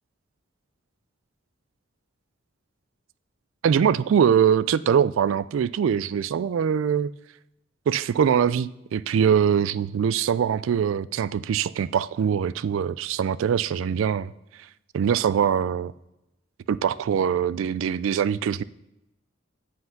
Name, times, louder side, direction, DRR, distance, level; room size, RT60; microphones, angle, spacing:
voice 1, 3.6-7.1 7.9-14.3 14.9-15.9 16.7-18.6, right 8 dB, 75° right, 0.3 m, -23 dB
8.0 x 7.8 x 5.8 m
head